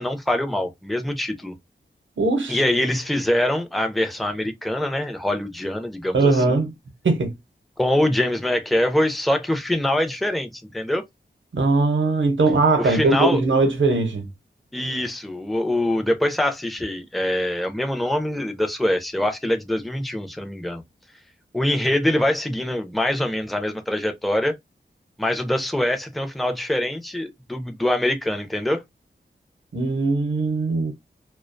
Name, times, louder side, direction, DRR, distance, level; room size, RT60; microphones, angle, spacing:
voice 1, 0.0-1.5 2.5-6.2 6.5-6.6 7.8-11.0 12.8-13.4 14.7-20.8 21.5-24.6 25.2-28.8, left 1 dB, ahead, 0.4 m, -24 dB
voice 2, 2.2-2.6 6.1-6.7 7.0-7.3 11.5-14.3 29.7-30.9, right 3 dB, 85° right, 0.7 m, -20 dB
2.3 x 2.1 x 2.5 m
wide cardioid pair, 85°, 19 cm